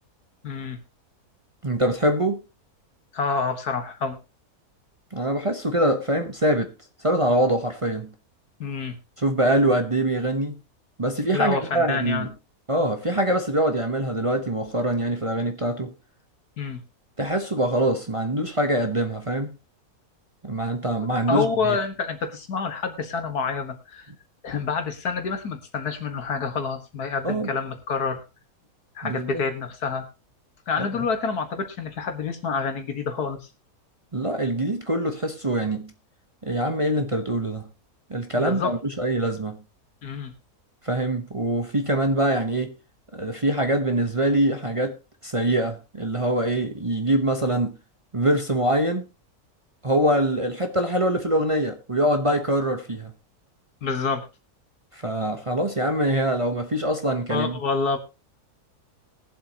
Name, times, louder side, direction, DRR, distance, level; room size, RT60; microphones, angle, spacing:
voice 1, 0.4-0.8 3.1-4.2 8.6-9.0 11.3-12.3 16.6-16.8 21.3-24.1 24.4-28.2 29.0-30.0 30.7-33.5 38.4-38.7 40.0-40.3 53.8-54.3 57.3-58.0, left 5 dB, 85° left, 2.1 m, -27 dB
voice 2, 1.6-2.4 5.1-6.7 7.0-8.1 9.2-10.6 11.0-12.3 12.7-15.9 17.2-19.5 20.4-21.8 27.2-27.5 29.0-29.4 30.8-31.0 34.1-35.9 36.4-37.7 38.1-39.6 40.8-42.7 43.1-45.0 45.2-47.8 48.1-49.0 49.8-53.1 54.9-57.6, right 1 dB, 25° right, 1.0 m, -24 dB
21.0 x 7.5 x 2.9 m
omnidirectional pair, 1.6 m